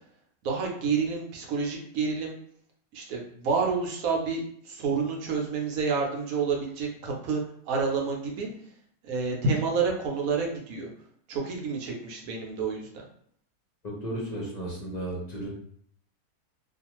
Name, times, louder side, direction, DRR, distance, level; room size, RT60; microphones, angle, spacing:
voice 1, 0.4-2.3 2.9-8.5 9.0-10.9 11.3-13.0, right 5 dB, 70° right, 0 dB, 1.0 m, -29 dB
voice 2, 13.8-15.5, right 1 dB, 40° left, -5 dB, 0.6 m, -34 dB
2.4 x 2.4 x 2.9 m, 0.64 s
omnidirectional pair, 1.6 m